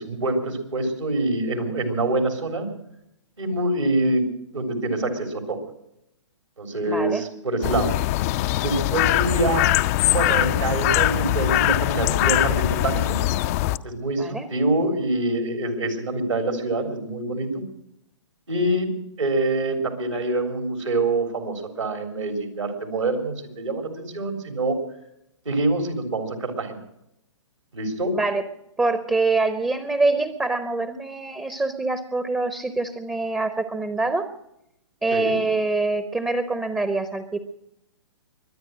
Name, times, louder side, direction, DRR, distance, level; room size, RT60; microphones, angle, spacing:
voice 1, 0.0-2.7 3.4-4.2 4.5-5.6 6.6-7.9 8.6-9.6 10.1-13.2 13.8-17.6 18.5-18.9 19.2-24.8 25.5-26.8 27.7-28.2 35.1-35.4, right 2 dB, 80° right, 5 dB, 3.7 m, -25 dB
voice 2, 6.9-7.2 14.2-14.5 28.1-28.4 28.8-34.3 35.0-37.4, right 3 dB, 5° right, 11 dB, 0.8 m, -25 dB
sound 1, 7.6-13.8, left 16 dB, 30° left, 0.5 m, -22 dB
23.0 x 9.5 x 6.3 m, 0.81 s
figure-of-eight pair, 125°, 16 cm